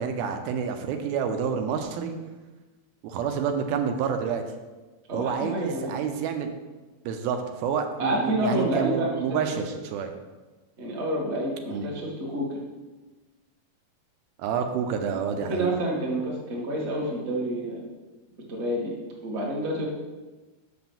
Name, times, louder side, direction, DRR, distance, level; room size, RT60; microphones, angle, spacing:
voice 1, 0.0-2.2 3.0-4.4 5.1-6.5 7.1-10.1 11.7-11.8 14.4-15.7, right 7 dB, 85° right, 6 dB, 2.5 m, -28 dB
voice 2, 5.1-5.9 8.0-9.4 10.8-12.6 15.5-17.8 18.5-18.9 19.2-19.8, right 1 dB, 45° right, -3 dB, 0.8 m, -28 dB
6.1 x 6.0 x 7.1 m, 1.2 s
omnidirectional pair, 4.4 m